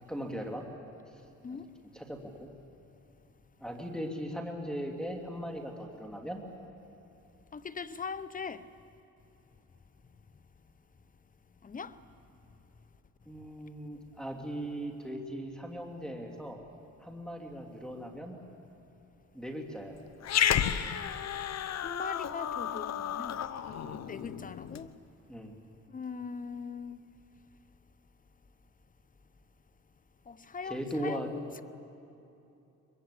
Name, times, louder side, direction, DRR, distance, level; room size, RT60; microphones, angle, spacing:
voice 1, 0.1-0.6 1.9-2.5 3.6-6.4 13.3-16.6 17.0-18.3 19.3-20.0 23.8-24.0 25.3-25.5 30.6-31.3, equal, ahead, 2.8 m, -38 dB
voice 2, 7.5-8.6 11.6-12.0 21.8-23.4 24.1-24.9 25.9-27.0 30.3-31.6, left 5 dB, 25° left, 0.9 m, -40 dB
Growling, 20.2-24.9, left 9 dB, 60° left, 0.9 m, -32 dB
23.0 x 22.5 x 8.4 m
cardioid pair, 90°, 30 cm